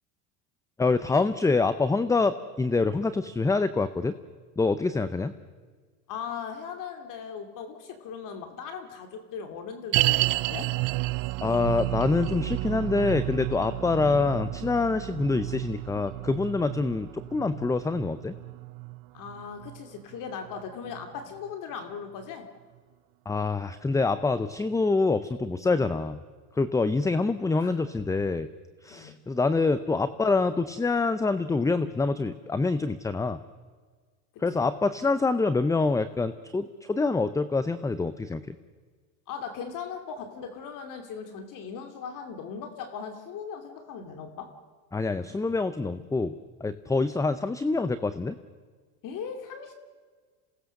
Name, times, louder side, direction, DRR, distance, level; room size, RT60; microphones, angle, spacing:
voice 1, 0.8-4.2 4.6-5.3 11.4-18.3 23.3-26.2 26.6-28.5 28.8-33.4 34.4-38.6 44.9-48.4, left 3 dB, 10° left, 13 dB, 0.6 m, -26 dB
voice 2, 6.1-10.7 19.1-22.5 27.6-27.8 28.9-29.2 34.3-34.7 39.3-44.5 49.0-49.7, left 6 dB, 50° left, 6 dB, 2.6 m, -38 dB
sound 1, 9.9-21.2 21.5-21.6 22.2-22.3, right 23 dB, 55° right, 0.6 m, -31 dB
27.5 x 18.0 x 6.6 m, 1.5 s
supercardioid pair, 115°, 40 cm